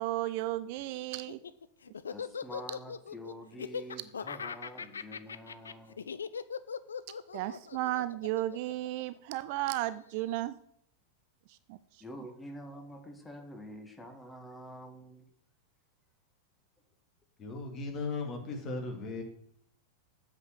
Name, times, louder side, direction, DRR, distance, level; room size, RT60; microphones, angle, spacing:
voice 1, 0.0-1.4 7.3-10.6 11.5-12.0, right 15 dB, 45° right, 14 dB, 0.4 m, -34 dB
Laughter, 1.1-9.6, left 6 dB, 70° left, 0.4 m, -40 dB
voice 2, 2.1-6.1 12.0-15.3, equal, 10° left, 5 dB, 1.5 m, -47 dB
voice 3, 17.4-19.2, left 3 dB, 30° left, 3 dB, 2.3 m, -37 dB
7.9 x 5.2 x 7.5 m, 0.68 s
figure-of-eight pair, 90°, 0 cm